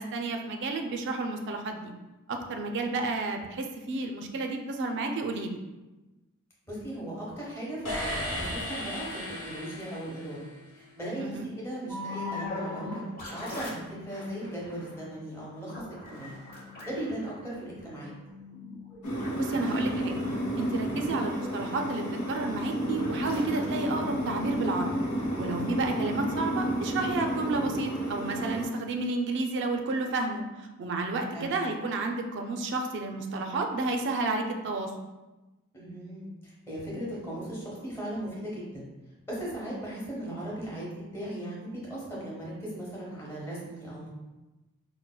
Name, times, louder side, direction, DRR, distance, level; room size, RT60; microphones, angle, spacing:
voice 1, 0.0-1.9 2.3-5.6 11.2-11.5 19.4-20.1 20.6-24.9 25.4-30.4 30.8-34.9, right 3 dB, 55° right, 4 dB, 0.4 m, -31 dB
voice 2, 6.6-10.5 10.7-13.0 13.3-15.8 16.1-16.4 16.8-18.1 31.3-31.5 34.3-34.4 35.7-38.9 39.3-44.1, right 1 dB, 10° left, -6 dB, 0.9 m, -38 dB
sound 1, 7.8-10.7, equal, 65° left, 1.1 m, -35 dB
sound 2, 11.9-24.9, left 2 dB, 40° left, 0.8 m, -42 dB
sound 3, 19.0-28.6, equal, 90° left, 0.8 m, -31 dB
4.6 x 2.1 x 2.2 m, 1.1 s
head